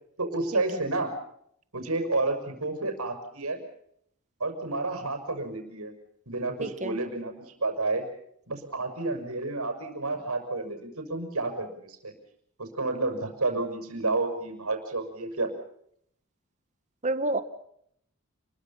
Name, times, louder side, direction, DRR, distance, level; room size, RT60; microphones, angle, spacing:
voice 1, 0.2-1.1 1.7-3.6 4.4-5.9 6.3-7.3 7.6-8.0 8.5-12.1 12.6-15.5, right 2 dB, 85° right, 6 dB, 6.2 m, -30 dB
voice 2, 6.6-7.0 17.0-17.4, right 2 dB, 35° right, 11 dB, 1.7 m, -28 dB
30.0 x 22.5 x 5.6 m, 0.69 s
head